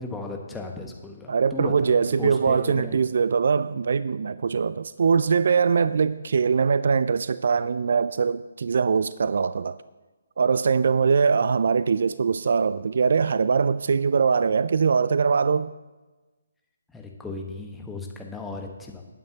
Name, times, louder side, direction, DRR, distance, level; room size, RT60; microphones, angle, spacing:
voice 1, 0.0-3.0 16.9-19.0, left 3 dB, 5° left, 1.3 m, -36 dB
voice 2, 1.3-9.8 10.4-15.7, right 5 dB, 55° right, 0.3 m, -22 dB
19.5 x 9.2 x 2.9 m
figure-of-eight pair, 140°, 0 cm